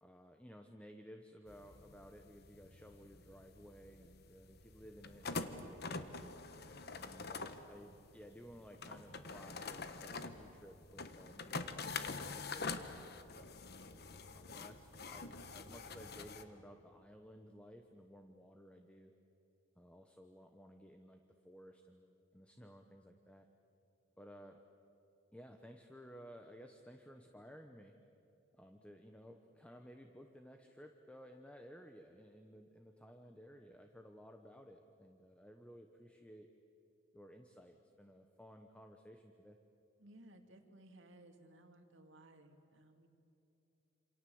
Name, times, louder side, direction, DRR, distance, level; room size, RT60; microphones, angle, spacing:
voice 1, 0.0-6.2 6.9-13.5 14.3-19.1 19.8-23.5 24.2-24.6 25.3-28.0 28.5-36.5 37.1-39.6, equal, 5° left, 5 dB, 1.0 m, -57 dB
sound 1, 1.5-16.4, left 4 dB, 50° left, 1.3 m, -46 dB
voice 2, 40.0-43.1, right 1 dB, 60° right, 5 dB, 2.5 m, -60 dB
27.5 x 27.5 x 7.9 m, 2.9 s
head